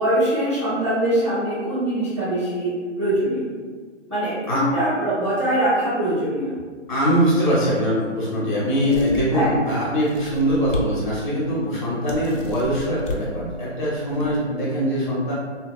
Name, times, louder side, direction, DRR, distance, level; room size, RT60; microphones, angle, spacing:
voice 1, 0.0-3.5 4.1-6.5 9.3-9.5, right 1 dB, 25° right, -12 dB, 0.5 m, -23 dB
voice 2, 6.9-15.3, equal, 30° left, -8 dB, 0.6 m, -22 dB
sound 1, 8.9-9.5 10.0-10.9 11.3-11.4 12.1-13.2 13.9-14.4, left 1 dB, 90° left, 0.6 m, -33 dB
2.7 x 2.3 x 2.4 m, 1.5 s
hypercardioid pair, 160°, 37 cm